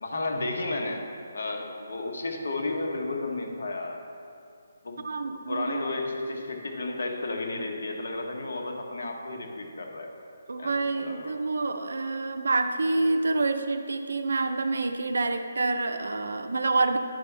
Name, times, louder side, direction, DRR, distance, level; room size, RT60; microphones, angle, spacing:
voice 1, 0.0-1.1 1.3-4.0 4.8-5.0 5.5-10.1 10.6-11.3, left 2 dB, 55° left, 2 dB, 1.0 m, -32 dB
voice 2, 5.0-5.8 10.5-17.0, right 3 dB, 65° right, 8 dB, 0.5 m, -27 dB
10.5 x 5.3 x 3.3 m, 2.4 s
hypercardioid pair, 180°, 0 cm